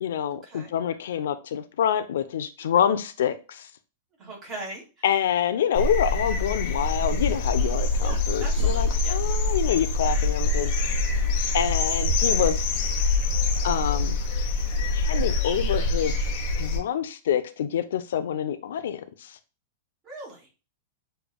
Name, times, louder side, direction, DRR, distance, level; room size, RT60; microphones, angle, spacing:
voice 1, 0.0-3.7 5.0-10.7 11.5-12.6 13.6-14.2 14.9-16.1 16.6-19.4, left 9 dB, 85° left, 0.6 m, -26 dB
voice 2, 4.2-5.0 8.0-9.2 11.1-11.3 20.0-20.5, right 2 dB, 20° right, 2.6 m, -40 dB
sound 1, 5.7-16.8, left 2 dB, 40° left, 1.0 m, -25 dB
7.0 x 3.4 x 2.2 m
supercardioid pair, 170°, 0 cm